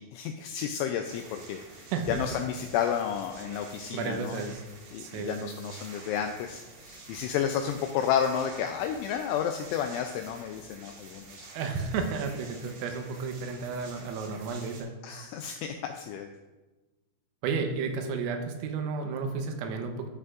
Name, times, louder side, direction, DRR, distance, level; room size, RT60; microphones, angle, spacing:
voice 1, 0.0-4.5 4.9-11.5 15.0-16.3, left 8 dB, 85° left, 5 dB, 2.7 m, -31 dB
sound 1, 1.0-14.8, right 3 dB, 60° right, 3.8 m, -49 dB
voice 2, 1.9-2.4 3.9-4.6 5.0-5.5 11.6-15.0 17.4-20.1, right 5 dB, 85° right, 5 dB, 3.6 m, -32 dB
13.5 x 7.9 x 2.5 m, 1.2 s
omnidirectional pair, 5.9 m